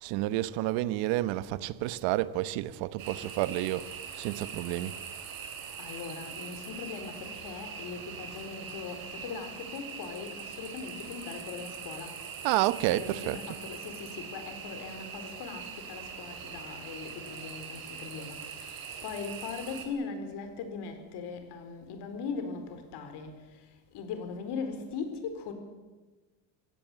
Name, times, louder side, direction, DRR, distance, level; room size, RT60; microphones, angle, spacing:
voice 1, 0.0-3.9 4.2-4.9 12.4-13.6, right 16 dB, 75° right, 1.1 m, -30 dB
sound 1, 3.0-19.9, right 6 dB, 50° right, 4.1 m, -42 dB
voice 2, 5.8-12.2 12.9-23.4 23.9-25.5, left 5 dB, 60° left, 4.3 m, -40 dB
23.5 x 17.0 x 8.0 m
cardioid pair, 145°, 45 cm